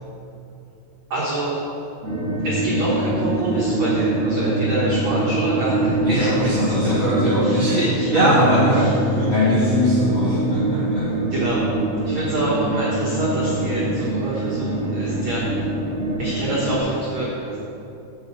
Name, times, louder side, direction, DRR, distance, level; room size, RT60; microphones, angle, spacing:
voice 1, 1.1-1.5 2.4-6.3 6.8-6.9 7.4-8.9 9.2-9.3 11.3-11.6 12.0-15.5 16.2-17.6, right 2 dB, 80° right, -7 dB, 1.5 m, -25 dB
sound 1, 2.0-16.8, right 1 dB, 40° right, 2.3 m, -24 dB
voice 2, 6.0-7.9 8.1-11.1 12.3-12.5, equal, 65° left, -8 dB, 1.6 m, -22 dB
11.0 x 5.4 x 7.4 m, 2.9 s
omnidirectional pair, 5.6 m